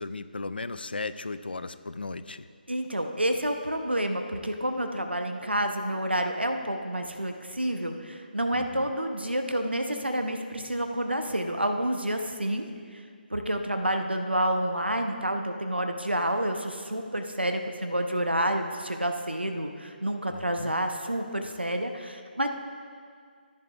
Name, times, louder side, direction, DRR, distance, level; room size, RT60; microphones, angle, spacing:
voice 1, 0.0-2.5 8.5-8.9 20.3-20.8, left 3 dB, 70° left, 13 dB, 0.4 m, -36 dB
voice 2, 2.7-13.0 13.3-22.5, right 1 dB, 90° right, 5 dB, 0.8 m, -29 dB
13.5 x 10.0 x 2.4 m, 2.1 s
figure-of-eight pair, 145°, 6 cm